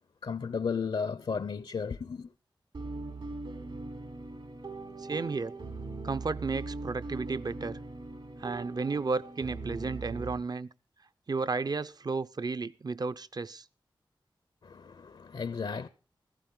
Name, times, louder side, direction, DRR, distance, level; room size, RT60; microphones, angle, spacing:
voice 1, 0.2-2.3 14.6-15.9, left 5 dB, 70° left, 0.6 m, -34 dB
sound 1, 2.7-10.4, right 3 dB, 70° right, 3.9 m, -40 dB
voice 2, 5.0-5.5 6.0-7.8 8.4-10.7 11.3-13.6, right 4 dB, 50° right, 0.6 m, -33 dB
15.0 x 14.5 x 3.8 m
wide cardioid pair, 80°, 9 cm